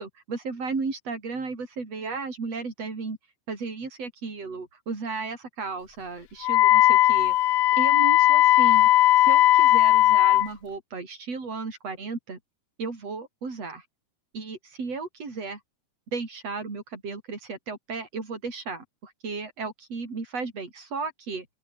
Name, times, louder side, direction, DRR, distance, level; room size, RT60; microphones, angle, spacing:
voice 1, 0.0-3.2 3.5-7.3 7.8-8.9 9.2-12.4 12.8-13.8 14.3-15.6 16.1-21.5, right 4 dB, 50° right, 6.4 m, -34 dB
Wind instrument woodwind instrument, 6.4-10.5, left 15 dB, 70° left, 1.6 m, -18 dB
open air
omnidirectional pair, 3.7 m